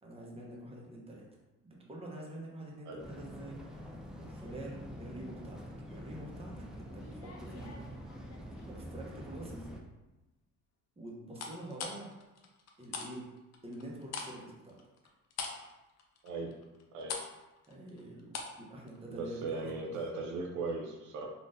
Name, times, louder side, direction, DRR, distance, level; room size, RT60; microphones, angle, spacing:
voice 1, 0.0-1.3 1.6-3.6 4.1-5.6 5.9-8.2 8.7-9.7 11.0-12.1 12.8-13.3 13.6-14.8 17.7-18.3 18.6-19.9, right 1 dB, 20° right, -3 dB, 0.8 m, -46 dB
sound 1, 3.0-9.8, equal, ahead, 0.4 m, -46 dB
sound 2, 7.0-8.7 9.1-9.6 11.3-13.1 13.4-18.6 18.9-19.0, left 4 dB, 60° left, 0.6 m, -43 dB
voice 2, 19.1-21.3, right 3 dB, 75° right, 1 dB, 0.5 m, -38 dB
3.6 x 2.5 x 2.6 m, 1.1 s
cardioid pair, 90°, 30 cm